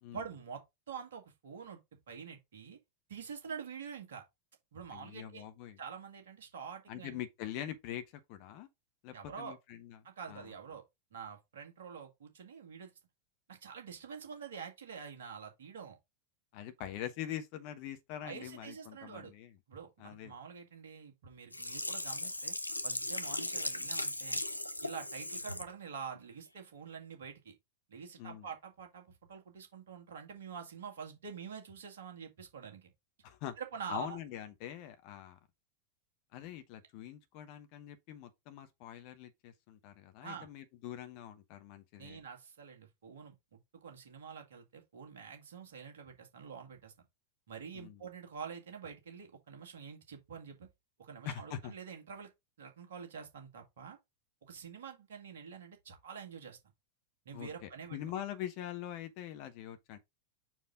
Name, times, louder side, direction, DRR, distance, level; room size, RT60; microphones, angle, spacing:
voice 1, 0.1-0.6 0.9-1.8 2.1-2.8 3.1-4.2 4.7-5.4 5.8-7.2 9.1-9.6 10.0-10.8 11.1-12.9 13.5-16.0 18.2-19.3 19.7-22.5 22.8-24.4 24.8-27.5 27.9-32.9 33.6-34.2 40.2-40.5 42.0-46.9 47.5-50.7 51.0-52.3 52.6-54.0 54.4-56.6 57.3-58.0, right 6 dB, 60° right, 1.9 m, -47 dB
voice 2, 4.9-5.8 6.9-8.0 8.3-8.7 9.0-10.0 10.3-10.5 16.5-19.5 20.0-20.3 28.2-28.5 33.2-33.6 33.9-35.4 36.3-42.2 47.7-48.0 51.2-51.7 57.3-60.0, left 11 dB, 45° left, 1.2 m, -43 dB
Sink (filling or washing), 21.5-25.7 26.2-26.3, left 1 dB, 85° left, 0.5 m, -37 dB
5.6 x 4.6 x 3.8 m
figure-of-eight pair, 90°, 0 cm